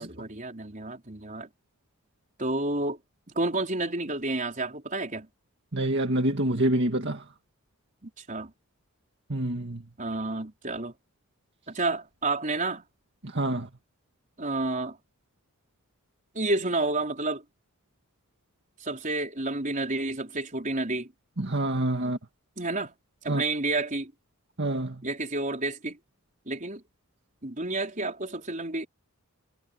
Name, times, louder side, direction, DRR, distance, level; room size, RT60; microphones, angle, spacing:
voice 1, 0.0-1.5 2.4-3.0 3.3-5.3 8.0-8.5 10.0-10.9 11.7-12.8 14.4-15.0 16.3-17.4 18.8-21.1 22.0-22.2 22.6-22.9 23.2-24.1 25.0-26.0 26.5-26.8 27.4-28.9, right 2 dB, 35° right, 4.6 m, -30 dB
voice 2, 5.7-7.2 9.3-9.8 13.2-13.7 21.4-22.2 23.3-23.4 24.6-25.0, right 1 dB, 55° right, 2.0 m, -27 dB
head